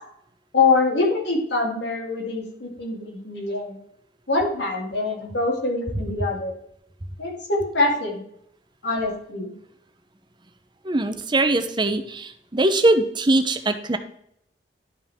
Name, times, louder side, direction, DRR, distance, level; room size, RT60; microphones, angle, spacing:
voice 1, 0.5-3.8 4.3-6.5 7.2-8.2 8.8-9.5, left 3 dB, 80° left, -1 dB, 2.6 m, -24 dB
voice 2, 10.9-14.0, right 2 dB, 25° right, 8 dB, 0.7 m, -21 dB
11.5 x 5.2 x 3.6 m, 0.72 s
head